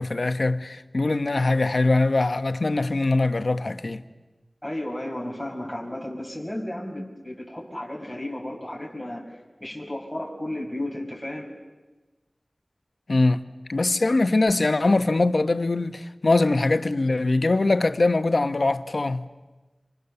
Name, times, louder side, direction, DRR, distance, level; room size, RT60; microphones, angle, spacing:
voice 1, 0.0-4.0 13.1-13.4 13.7-19.2, left 2 dB, 70° left, 1.0 m, -22 dB
voice 2, 4.6-11.5, left 1 dB, 5° left, 6.2 m, -33 dB
26.5 x 25.5 x 6.9 m
wide cardioid pair, 40°, 0 cm